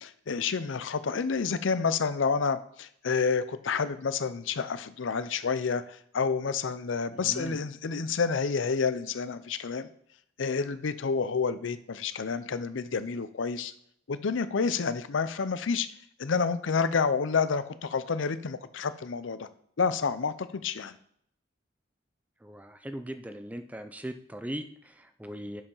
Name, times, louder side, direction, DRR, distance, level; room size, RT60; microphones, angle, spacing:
voice 1, 0.0-9.9 10.4-13.7 14.1-15.9 16.2-19.5 19.8-21.0, left 5 dB, 75° left, 13 dB, 0.5 m, -29 dB
voice 2, 7.2-7.6 22.4-25.6, equal, 10° right, 8 dB, 0.4 m, -39 dB
7.1 x 5.5 x 5.5 m, 0.69 s
head